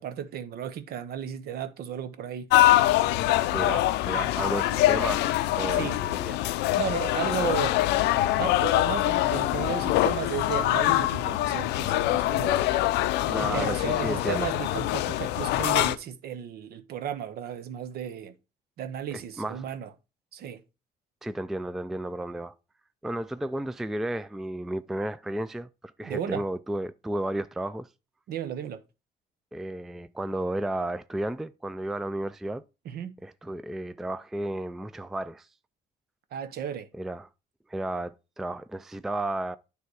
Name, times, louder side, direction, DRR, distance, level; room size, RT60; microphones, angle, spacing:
voice 1, 0.0-2.5 5.7-6.0 6.8-7.8 8.4-12.6 13.4-18.3 18.8-19.9 20.3-20.6 26.0-26.4 28.3-28.8 32.8-33.1 36.3-36.9, right 9 dB, 65° right, 0.9 m, -34 dB
sound 1, 2.5-15.9, left 15 dB, 85° left, 0.5 m, -24 dB
voice 2, 3.5-5.3 5.6-6.4 13.2-14.5 19.1-19.7 21.2-22.5 23.0-25.7 26.0-27.9 29.5-32.6 33.2-35.5 36.9-37.3 37.7-39.6, right 1 dB, ahead, 0.3 m, -33 dB
9.3 x 3.4 x 4.7 m
cardioid pair, 110°, 17 cm